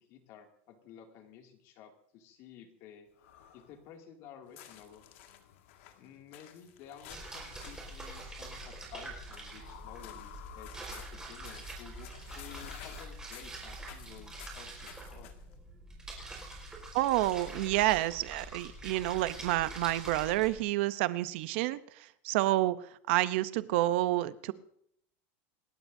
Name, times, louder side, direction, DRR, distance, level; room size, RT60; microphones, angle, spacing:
voice 1, 0.1-3.1 3.5-5.1 6.0-15.3, left 8 dB, 45° left, 3 dB, 2.4 m, -53 dB
sound 1, 3.2-3.8 4.8-6.0 7.0-8.2 9.6-11.1 12.2-13.6, left 10 dB, 85° left, 1.5 m, -53 dB
sound 2, 4.4-15.6, left 11 dB, 65° left, 1.9 m, -55 dB
sound 3, 7.1-20.6, right 2 dB, 10° right, 4.7 m, -45 dB
voice 2, 16.9-24.5, right 16 dB, 60° right, 15 dB, 0.7 m, -29 dB
27.5 x 13.5 x 2.7 m, 0.73 s
supercardioid pair, 155°, 7 cm